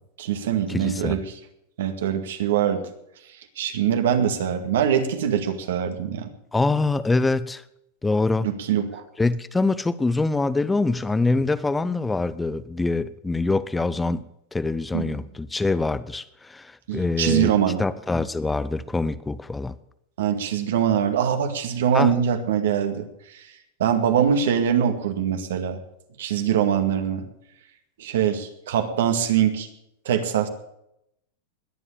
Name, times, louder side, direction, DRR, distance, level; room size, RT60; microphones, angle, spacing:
voice 1, 0.2-1.3 1.8-2.8 3.6-6.3 8.4-9.0 14.9-15.2 16.9-17.8 20.2-23.4 23.8-25.8 26.2-27.3 28.0-29.7 30.1-30.5, right 9 dB, 80° right, 2.0 m, -23 dB
voice 2, 0.7-1.2 6.5-7.6 8.0-8.5 9.2-14.2 14.5-17.5 17.8-19.7 21.9-22.2, left 3 dB, 10° left, 0.6 m, -24 dB
20.5 x 7.6 x 6.8 m
hypercardioid pair, 125°, 0 cm